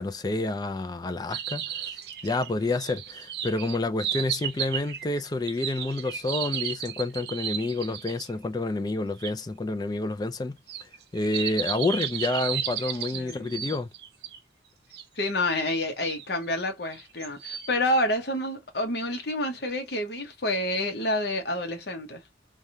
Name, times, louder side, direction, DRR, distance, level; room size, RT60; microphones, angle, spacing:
voice 1, 0.0-1.9 2.2-10.6 11.1-13.9, left 2 dB, 20° left, 0.3 m, -29 dB
sound 1, 1.3-8.3 9.2-9.3 10.7-14.4 14.9-15.0 15.6-16.3 16.9-17.7, right 9 dB, 60° right, 0.6 m, -34 dB
voice 2, 13.1-13.7 15.2-22.2, left 1 dB, 55° left, 0.9 m, -28 dB
3.4 x 2.3 x 2.6 m
head